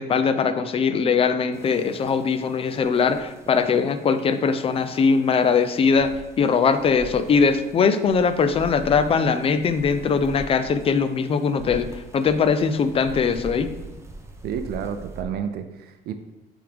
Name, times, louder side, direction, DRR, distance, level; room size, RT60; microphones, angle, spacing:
voice 1, 0.0-11.9 12.1-13.7, left 5 dB, 35° left, 11 dB, 0.5 m, -21 dB
sound 1, 1.5-15.2, right 2 dB, 15° right, 0.7 m, -42 dB
voice 2, 14.4-16.1, right 8 dB, 70° right, 8 dB, 0.5 m, -30 dB
7.5 x 3.6 x 3.5 m, 1.0 s
cardioid pair, 110°, 17 cm